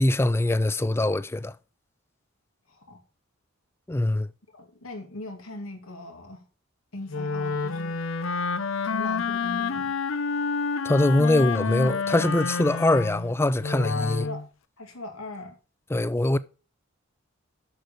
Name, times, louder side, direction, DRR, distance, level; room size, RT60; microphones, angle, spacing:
voice 1, 0.0-1.5 3.9-4.3 10.8-14.3 15.9-16.4, left 1 dB, 10° left, 0.3 m, -23 dB
voice 2, 4.5-6.4 6.9-8.0 8.8-10.0 13.8-14.5 14.8-15.6, left 2 dB, 90° left, 2.4 m, -39 dB
Wind instrument woodwind instrument, 7.1-14.5, left 5 dB, 70° left, 0.7 m, -29 dB
7.8 x 6.7 x 5.2 m
head